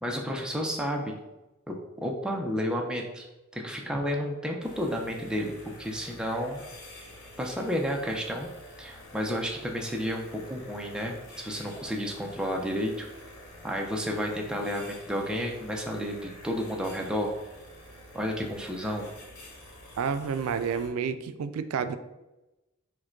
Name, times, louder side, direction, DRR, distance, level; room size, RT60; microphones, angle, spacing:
voice 1, 0.0-1.2 1.7-3.3 3.5-5.5 5.8-6.6 7.4-8.5 8.8-13.1 13.6-17.3 18.1-19.1, equal, 5° right, 0 dB, 0.4 m, -31 dB
sound 1, 4.6-20.9, left 1 dB, 65° left, 1.0 m, -48 dB
voice 2, 20.0-22.0, right 6 dB, 80° right, 12 dB, 0.3 m, -30 dB
4.7 x 2.2 x 4.4 m, 1.0 s
head